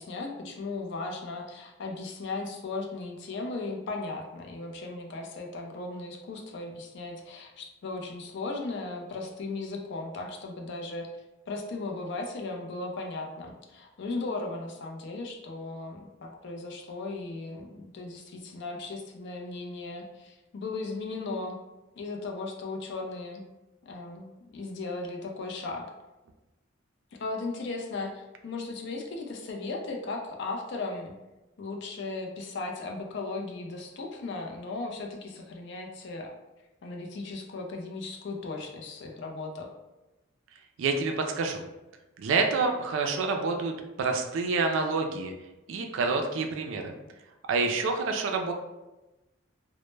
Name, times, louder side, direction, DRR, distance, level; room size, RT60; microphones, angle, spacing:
voice 1, 0.0-11.1 11.5-21.6 22.0-23.4 23.8-25.9 27.2-31.1 31.6-36.3 36.8-39.7 47.9-48.2, left 3 dB, 60° left, 1 dB, 0.4 m, -37 dB
voice 2, 40.8-41.6 42.2-45.3 45.7-46.9 47.5-48.5, right 4 dB, 65° right, 4 dB, 0.3 m, -28 dB
2.0 x 2.0 x 3.1 m, 1.0 s
head